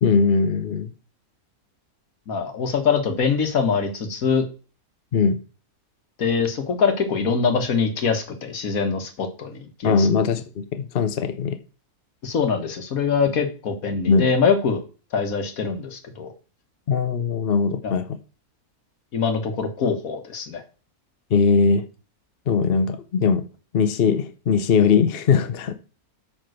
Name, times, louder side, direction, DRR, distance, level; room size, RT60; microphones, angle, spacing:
voice 1, 0.0-0.9 5.1-5.4 9.8-11.6 14.1-14.3 16.9-18.1 21.3-21.9 22.5-23.4 23.7-25.7, left 5 dB, 50° left, 9 dB, 0.8 m, -20 dB
voice 2, 2.3-4.5 6.2-10.1 12.2-14.8 15.1-16.3 17.8-18.0 19.1-20.6, left 5 dB, 65° left, 8 dB, 1.7 m, -23 dB
9.0 x 3.8 x 6.4 m, 0.35 s
omnidirectional pair, 1.6 m